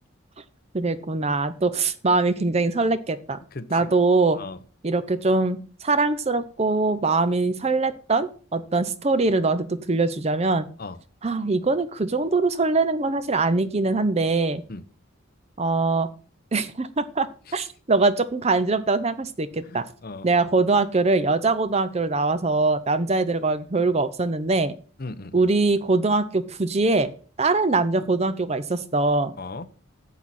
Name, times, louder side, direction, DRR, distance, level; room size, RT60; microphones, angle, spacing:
voice 1, 0.7-3.4 3.7-4.4 4.8-10.7 11.2-14.6 15.6-16.1 16.5-17.3 17.5-19.8 20.2-24.7 25.3-27.1 27.4-29.3, right 3 dB, 30° right, 0.6 m, -22 dB
voice 2, 3.5-3.9 4.4-4.6 10.8-11.0 14.7-14.8 17.5-17.7 19.7-20.3 25.0-25.5 29.4-29.7, left 3 dB, 45° left, 0.7 m, -37 dB
11.0 x 7.5 x 4.2 m
head